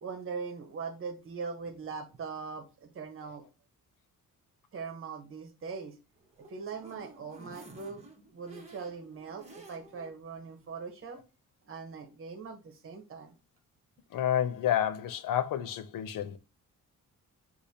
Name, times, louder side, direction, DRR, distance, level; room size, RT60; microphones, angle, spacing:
voice 1, 0.0-3.4 4.7-5.9 6.5-8.0 8.3-11.2 11.7-13.3, right 5 dB, 45° right, 1.0 m, -41 dB
sound 1, 6.2-10.1 10.6-10.7 11.0-11.1, right 2 dB, 20° right, 1.0 m, -52 dB
voice 2, 14.1-16.4, left 10 dB, 85° left, 0.7 m, -29 dB
6.6 x 2.7 x 2.7 m
wide cardioid pair, 165°, 32 cm